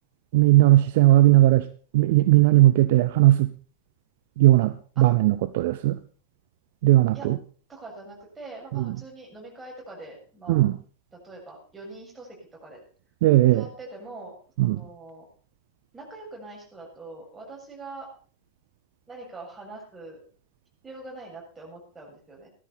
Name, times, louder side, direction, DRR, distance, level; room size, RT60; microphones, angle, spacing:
voice 1, 0.3-1.7 1.9-3.5 4.4-6.0 6.8-7.4 8.7-8.8 10.5-10.8 13.2-13.6 14.6-14.8, right 16 dB, 50° right, 14 dB, 0.6 m, -18 dB
voice 2, 7.7-10.7 11.1-12.8 13.5-14.4 14.6-15.3 15.9-18.1 19.1-20.2 20.8-22.5, right 2 dB, 15° right, -1 dB, 7.0 m, -43 dB
17.0 x 13.0 x 4.3 m, 0.42 s
figure-of-eight pair, 90°, 0 cm